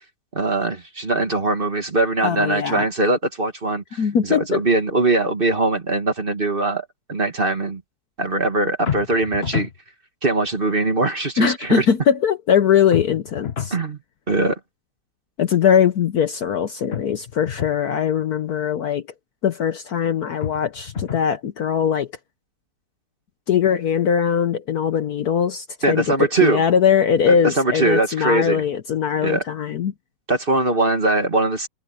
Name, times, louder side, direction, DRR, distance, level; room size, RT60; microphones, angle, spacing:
voice 1, 0.3-7.8 8.2-9.7 10.2-11.9 13.7-14.0 14.3-14.6 25.8-26.7 27.3-28.6 29.2-29.4 30.3-31.7, right 2 dB, 30° right, 1.8 m, -21 dB
voice 2, 2.2-2.9 4.0-4.6 11.4-13.7 15.4-19.0 19.4-22.1 23.5-29.9, left 8 dB, 60° left, 1.2 m, -20 dB
sound 1, 8.9-9.8 12.9-13.8 16.9-17.8 20.4-21.3, left 7 dB, 35° left, 1.4 m, -29 dB
omnidirectional pair, 2.1 m